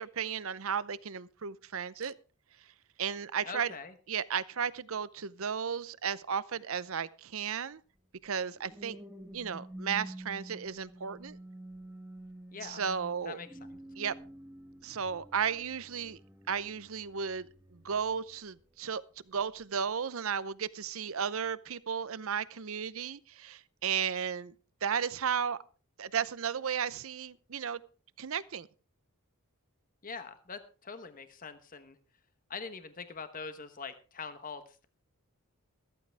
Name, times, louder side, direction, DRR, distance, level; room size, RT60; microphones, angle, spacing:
voice 1, 0.0-2.1 3.0-3.7 4.1-7.8 8.2-9.0 9.3-11.4 12.6-13.4 14.0-14.1 14.8-16.2 16.5-19.0 19.3-24.5 24.8-25.6 26.0-27.8 28.2-28.7, right 7 dB, 65° right, 0.7 m, -34 dB
voice 2, 3.5-3.9 12.5-12.8 13.2-13.6 30.0-32.0 32.5-34.8, left 5 dB, 40° left, 1.1 m, -43 dB
sound 1, 8.2-18.8 19.3-19.6, right 1 dB, 10° right, 1.2 m, -49 dB
14.5 x 14.0 x 3.5 m
head